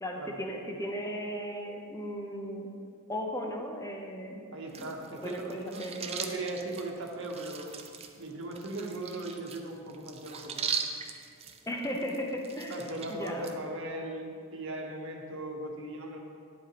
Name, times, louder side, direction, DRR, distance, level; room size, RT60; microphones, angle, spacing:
voice 1, 0.0-2.7 3.1-4.4 5.2-5.9 11.7-12.8 13.1-13.5, equal, 15° left, 1 dB, 0.7 m, -36 dB
voice 2, 4.5-7.9 8.2-10.7 12.7-16.2, right 2 dB, 65° right, 0 dB, 1.1 m, -38 dB
sound 1, 4.7-13.5, right 6 dB, 30° right, 0.5 m, -40 dB
9.9 x 7.8 x 3.0 m, 2.3 s
head